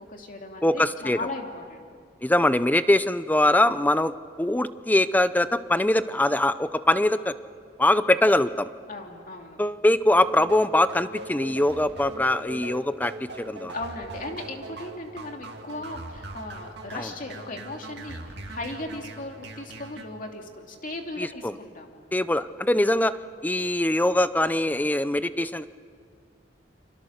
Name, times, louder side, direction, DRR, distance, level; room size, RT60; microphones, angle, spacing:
voice 1, 0.0-1.9 8.9-9.6 13.7-22.0, left 2 dB, 45° left, 2 dB, 2.7 m, -37 dB
voice 2, 0.6-1.2 2.2-7.3 7.8-8.7 9.6-13.7 17.0-17.1 21.2-21.5 22.1-23.2 23.4-25.6, left 1 dB, 10° left, 14 dB, 0.6 m, -22 dB
sound 1, 10.1-20.0, right 2 dB, 65° right, 2.4 m, -40 dB
30.0 x 25.5 x 6.6 m, 2.1 s
head